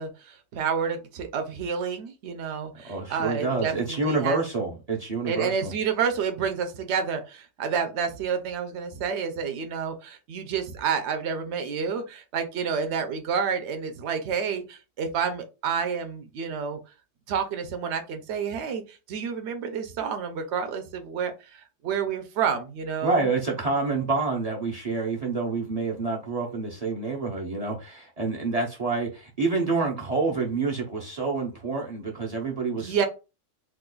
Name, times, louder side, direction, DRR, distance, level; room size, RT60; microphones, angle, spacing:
voice 1, 0.0-4.4 5.3-16.8 17.3-23.3 32.8-33.0, right 6 dB, 65° right, 7 dB, 0.9 m, -29 dB
voice 2, 2.8-5.7 23.0-33.0, right 3 dB, 40° right, -2 dB, 0.7 m, -28 dB
2.9 x 2.3 x 3.7 m, 0.29 s
omnidirectional pair, 1.3 m